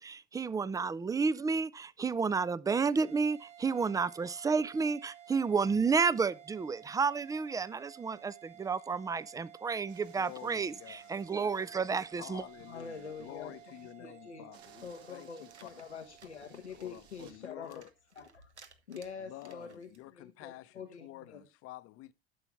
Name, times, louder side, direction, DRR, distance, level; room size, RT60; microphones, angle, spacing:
voice 1, 0.0-12.4, right 5 dB, 10° right, 0.4 m, -31 dB
sound 1, 2.9-17.5, right 10 dB, 50° right, 1.7 m, -55 dB
sound 2, 9.9-13.9 14.5-17.4, right 7 dB, 70° right, 3.0 m, -62 dB
voice 2, 10.2-11.1 11.9-15.7 16.5-17.9 19.2-22.1, left 17 dB, 45° left, 0.8 m, -50 dB
voice 3, 12.7-14.4 14.8-17.7 18.2-18.5 18.9-21.4, left 5 dB, 90° left, 1.1 m, -46 dB
sound 3, 15.4-20.1, right 5 dB, 90° right, 1.3 m, -60 dB
12.5 x 6.9 x 3.4 m
hypercardioid pair, 80°, 33 cm